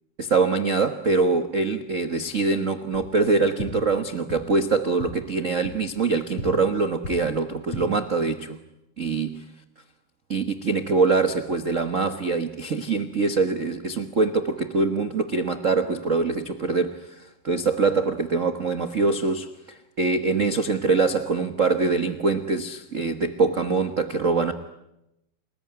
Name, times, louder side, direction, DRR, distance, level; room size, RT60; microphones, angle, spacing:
voice 1, 0.2-8.6 9.0-9.4 10.3-24.5, right 4 dB, 75° right, 0.7 m, -24 dB
sound 1, 2.9-3.0 3.6-3.7 4.3-4.4 4.9-5.1 5.6-5.7 6.3-6.4 7.0-7.1 7.6-7.8, left 2 dB, 50° left, 8.7 m, -34 dB
29.5 x 20.5 x 9.8 m
omnidirectional pair, 3.5 m